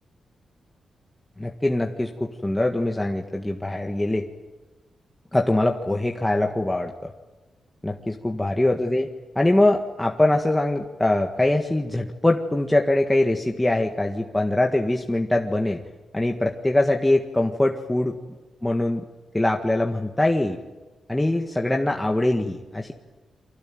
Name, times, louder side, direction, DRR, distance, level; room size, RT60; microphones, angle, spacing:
voice 1, 1.4-4.3 5.3-7.1 7.8-9.1 9.4-15.8 16.1-18.1 18.6-19.0 19.3-20.6 21.1-22.9, left 1 dB, 10° left, 2 dB, 1.7 m, -23 dB
29.5 x 25.0 x 7.8 m, 1.2 s
wide cardioid pair, 115°, 0 cm